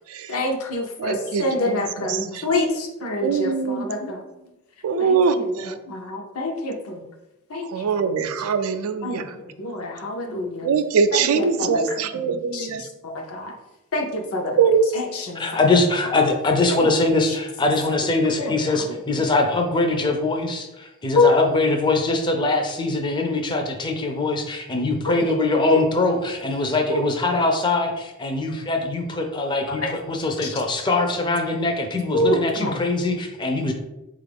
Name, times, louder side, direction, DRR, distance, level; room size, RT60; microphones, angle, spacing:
voice 1, 0.3-4.2 5.0-7.0 7.5-7.9 9.0-10.7 11.1-13.6 13.9-14.6 14.9-15.6 16.8-16.9 18.4-18.8 19.1-19.2 21.1-21.3 25.7-25.8 26.9-27.0 29.7-29.9 30.4-30.6 32.1-32.8, left 2 dB, 80° left, 2 dB, 0.7 m, -26 dB
voice 2, 1.0-2.5 3.2-3.9 4.8-5.7 7.7-9.3 10.6-12.8 14.6-14.9, right 5 dB, 80° right, 9 dB, 0.3 m, -22 dB
voice 3, 15.3-33.7, left 2 dB, 20° left, 3 dB, 0.4 m, -22 dB
4.1 x 2.4 x 3.3 m, 0.97 s
head